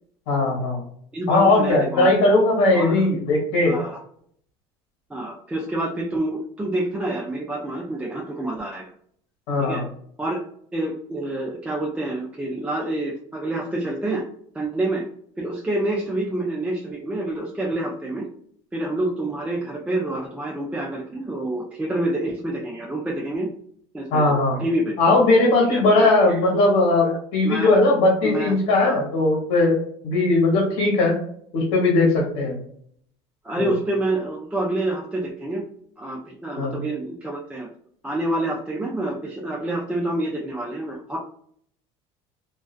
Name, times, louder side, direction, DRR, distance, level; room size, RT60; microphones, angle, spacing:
voice 1, 0.3-0.8 1.3-3.8 9.5-9.8 24.1-24.6 25.0-29.8 30.0-31.2 31.5-32.5 33.6-33.7 36.6-36.8, left 2 dB, 80° left, -3 dB, 1.0 m, -19 dB
voice 2, 1.1-2.1 2.7-3.1 3.7-4.0 5.1-8.9 9.6-9.8 10.2-10.4 10.7-14.2 14.5-15.0 15.4-18.3 18.7-23.5 23.9-25.0 25.7-26.5 27.4-27.7 28.2-29.0 33.4-35.7 36.0-37.7 38.0-41.2, right 1 dB, 10° right, -2 dB, 0.4 m, -27 dB
2.3 x 2.3 x 2.4 m, 0.63 s
supercardioid pair, 110°, 13 cm